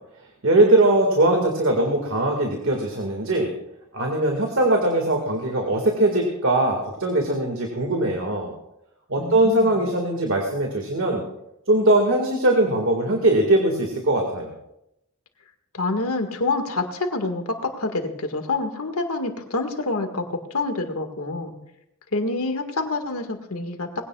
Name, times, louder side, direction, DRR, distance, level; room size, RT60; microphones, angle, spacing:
voice 1, 0.4-3.5 3.9-8.5 9.1-11.2 11.7-14.5, right 1 dB, 65° right, 1 dB, 1.9 m, -21 dB
voice 2, 9.2-9.8 15.7-21.6 22.1-23.9, left 3 dB, 90° left, 5 dB, 1.8 m, -27 dB
20.5 x 16.5 x 2.4 m, 0.84 s
head